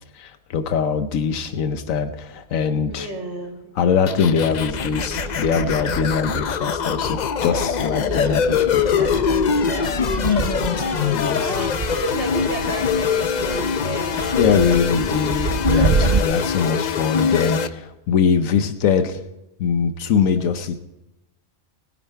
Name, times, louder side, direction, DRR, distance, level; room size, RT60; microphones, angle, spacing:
voice 1, 0.1-3.1 3.8-9.1 11.1-11.5 14.4-19.2 19.6-20.8, left 6 dB, 90° left, 10 dB, 1.2 m, -22 dB
voice 2, 2.9-3.6 8.9-14.2, right 1 dB, 60° right, -4 dB, 2.2 m, -31 dB
sound 1, 4.1-17.7, left 7 dB, 55° left, 0.5 m, -23 dB
sound 2, 4.5-16.2, right 4 dB, 40° right, 0.7 m, -28 dB
20.0 x 9.2 x 4.7 m, 0.92 s
omnidirectional pair, 1.3 m